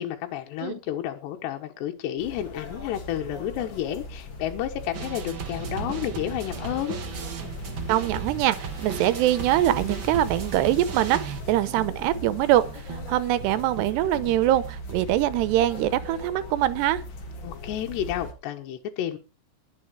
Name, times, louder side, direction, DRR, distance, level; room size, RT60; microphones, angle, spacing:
voice 1, 0.0-7.0 17.4-19.2, left 11 dB, 80° left, 3.4 m, -31 dB
sound 1, 2.2-18.3, left 1 dB, 40° left, 1.8 m, -39 dB
sound 2, 4.9-16.3, right 6 dB, 60° right, 1.2 m, -37 dB
voice 2, 7.9-12.6 13.1-17.0, right 13 dB, 80° right, 2.9 m, -23 dB
20.5 x 7.2 x 4.7 m
omnidirectional pair, 4.8 m